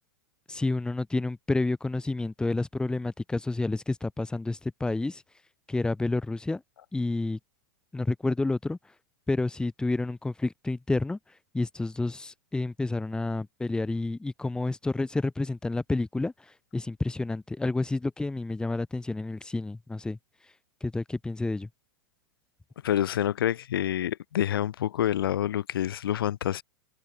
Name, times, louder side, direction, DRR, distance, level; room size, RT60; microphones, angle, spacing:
voice 1, 0.5-5.2 5.7-6.6 6.9-7.4 7.9-8.8 9.3-11.2 11.5-16.3 16.7-20.2 20.8-21.7, left 2 dB, 5° left, 0.7 m, -29 dB
voice 2, 22.8-26.6, left 11 dB, 75° left, 0.4 m, -27 dB
hypercardioid pair, 100°, 12 cm